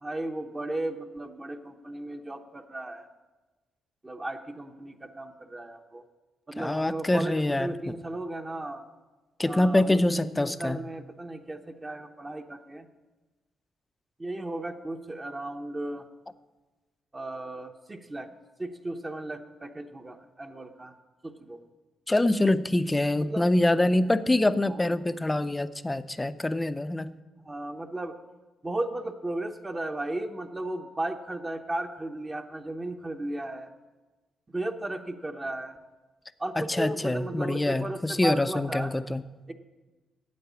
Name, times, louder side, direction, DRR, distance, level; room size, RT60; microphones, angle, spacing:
voice 1, 0.0-3.1 4.0-6.0 6.5-8.8 9.4-12.9 14.2-16.0 17.1-18.3 18.6-20.9 21.2-21.6 23.2-23.5 24.7-24.9 27.4-28.2 28.6-33.7 34.5-35.8 36.4-38.9 39.5-39.6, right 2 dB, 20° right, 4 dB, 0.8 m, -35 dB
voice 2, 6.6-8.0 9.4-10.8 22.1-27.1 36.6-39.2, left 1 dB, 15° left, 13 dB, 0.5 m, -25 dB
9.5 x 7.9 x 8.3 m, 1.2 s
cardioid pair, 85°, 0 cm